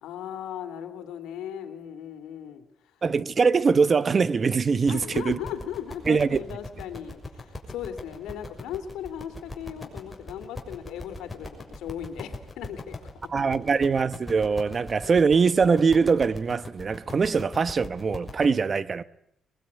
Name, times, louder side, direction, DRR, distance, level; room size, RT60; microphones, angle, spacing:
voice 1, 0.0-2.6 4.9-13.1 13.6-13.7, left 9 dB, 90° left, 2.9 m, -37 dB
voice 2, 3.0-5.4 6.1-6.4 13.3-19.0, right 5 dB, 40° right, 1.1 m, -22 dB
sound 1, 4.7-18.4, left 2 dB, 15° left, 6.5 m, -41 dB
22.5 x 22.0 x 9.5 m
cardioid pair, 90°, 0 cm